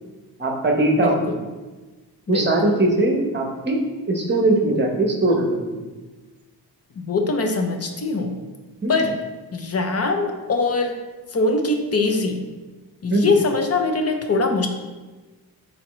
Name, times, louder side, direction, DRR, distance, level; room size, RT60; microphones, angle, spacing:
voice 1, 0.4-1.5 2.3-3.8 4.1-5.9 8.8-9.1 13.1-13.3, right 2 dB, 25° right, 1 dB, 0.9 m, -21 dB
voice 2, 1.0-1.3 2.3-2.8 7.0-8.4 8.9-9.1 9.5-10.9 11.3-12.4 13.0-14.7, left 3 dB, 40° left, 5 dB, 0.7 m, -22 dB
6.9 x 4.3 x 3.1 m, 1.2 s
wide cardioid pair, 145°, 40 cm